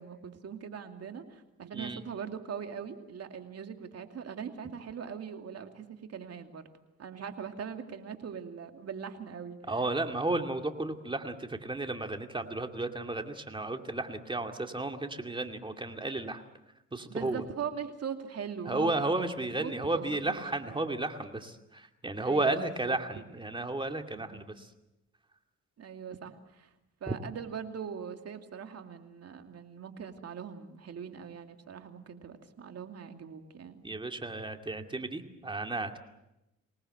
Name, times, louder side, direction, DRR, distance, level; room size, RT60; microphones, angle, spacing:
voice 1, 0.0-6.6 7.0-9.8 17.1-20.9 22.2-23.0 23.4-23.6 24.2-24.5 25.8-26.7 27.0-33.8, right 7 dB, 55° right, 6 dB, 2.7 m, -41 dB
voice 2, 9.7-16.4 16.9-17.4 18.7-24.7 27.1-27.2 33.8-36.0, right 2 dB, 15° right, 5 dB, 2.5 m, -33 dB
25.0 x 19.0 x 8.0 m, 0.90 s
cardioid pair, 90°, 30 cm